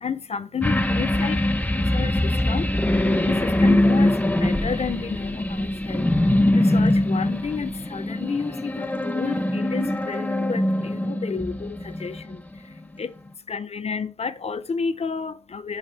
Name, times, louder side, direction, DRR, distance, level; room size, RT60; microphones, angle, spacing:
voice 1, 0.0-1.4 1.7-2.7 3.2-4.1 4.4-6.1 6.5-12.4 13.0-13.1 13.5-15.8, left 5 dB, 70° left, 0.5 m, -31 dB
sound 1, 0.6-12.4 12.8-12.9, left 1 dB, 15° left, 0.5 m, -22 dB
7.4 x 3.0 x 4.3 m
wide cardioid pair, 85°, 11 cm